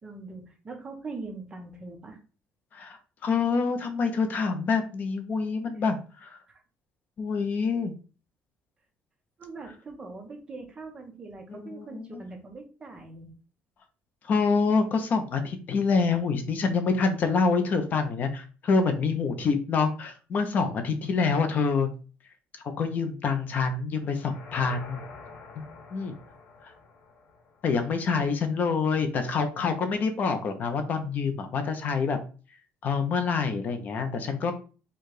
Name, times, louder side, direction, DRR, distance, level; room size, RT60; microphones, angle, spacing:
voice 1, 0.0-2.2 6.5-6.6 9.4-13.3, right 3 dB, 20° right, 3 dB, 1.0 m, -42 dB
voice 2, 2.7-6.4 7.2-7.9 11.5-12.1 14.2-21.9 22.8-25.0 25.6-26.1 26.6-26.7 27.6-32.2 32.8-34.5, left 4 dB, 40° left, 7 dB, 0.7 m, -26 dB
sound 1, 24.0-28.1, left 4 dB, 70° left, 1.6 m, -47 dB
4.6 x 2.4 x 4.8 m, 0.36 s
cardioid pair, 160°, 4 cm